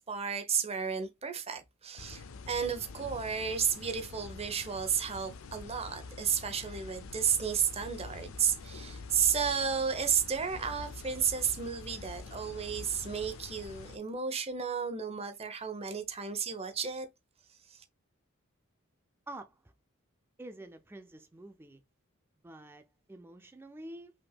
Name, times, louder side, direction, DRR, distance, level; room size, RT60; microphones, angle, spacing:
voice 1, 0.0-17.1 17.7-17.8, right 7 dB, 30° right, 0.8 m, -32 dB
sound 1, 2.0-14.0, left 3 dB, 70° left, 0.5 m, -46 dB
voice 2, 20.4-21.8 22.4-24.1, right 1 dB, 10° right, 0.3 m, -47 dB
5.7 x 3.5 x 2.3 m
head